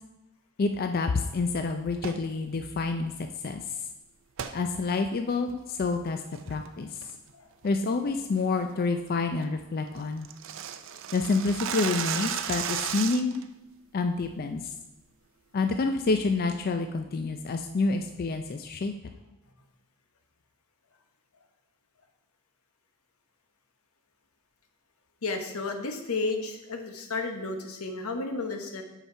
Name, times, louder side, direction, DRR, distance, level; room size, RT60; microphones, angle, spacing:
voice 1, 0.6-3.8 4.5-7.0 7.6-10.3 11.1-13.4 13.9-14.7 15.5-18.9, left 3 dB, 45° left, 6 dB, 0.4 m, -28 dB
sound 1, 1.9-2.3 4.4-4.6 5.1-5.2 5.7-5.9 6.3-6.7 7.0-7.3 7.6-7.7 8.1-8.4 8.7-8.8 9.1-9.2 9.4-9.5 9.8-13.4, right 8 dB, 60° right, 0.5 m, -34 dB
voice 2, 25.2-28.8, left 3 dB, 85° left, 5 dB, 1.0 m, -32 dB
8.1 x 5.8 x 4.5 m, 1.0 s
head